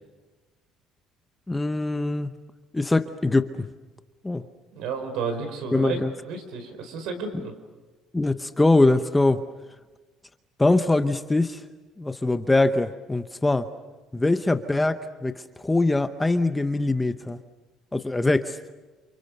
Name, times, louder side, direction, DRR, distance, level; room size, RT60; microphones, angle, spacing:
voice 1, 1.5-2.3 2.7-3.7 4.2-4.4 5.7-6.1 8.1-9.4 10.6-11.6 12.0-13.7 14.1-17.4 17.9-18.6, left 2 dB, 10° left, 10 dB, 0.8 m, -22 dB
voice 2, 4.7-7.5, right 5 dB, 70° right, 8 dB, 5.2 m, -32 dB
29.0 x 28.5 x 6.7 m, 1.2 s
cardioid pair, 155°, 0 cm